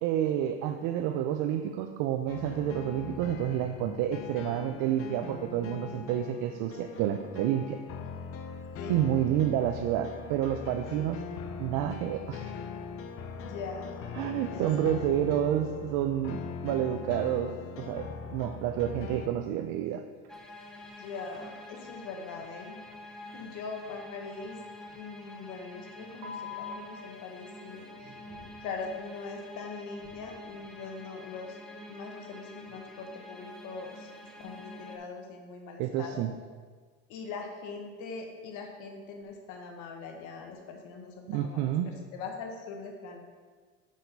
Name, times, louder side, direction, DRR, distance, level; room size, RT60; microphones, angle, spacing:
voice 1, 0.0-7.8 8.9-11.2 11.6-12.5 14.1-20.0 35.8-36.3 41.3-41.9, right 11 dB, 75° right, 7 dB, 0.5 m, -29 dB
sound 1, 2.3-19.3, left 6 dB, 45° left, 0.6 m, -41 dB
voice 2, 8.8-9.1 13.3-14.7 21.0-22.8 23.3-24.6 24.9-28.2 28.6-34.1 34.4-36.2 37.1-43.2, left 4 dB, 70° left, 3 dB, 1.0 m, -42 dB
sound 2, 18.1-18.5 20.2-20.4 20.7-20.9 21.3-21.5 21.8-22.0 22.3-22.5 22.8-23.0 23.3-23.5 23.8-24.0 24.3-24.5 24.8-25.0 26.2-26.7 27.8-31.4 32.5-32.8, left 6 dB, 55° right, 1.3 m, -49 dB
sound 3, 20.3-35.0, left 1 dB, ahead, 0.7 m, -47 dB
6.4 x 4.0 x 5.4 m, 1.5 s
cardioid pair, 110°, 32 cm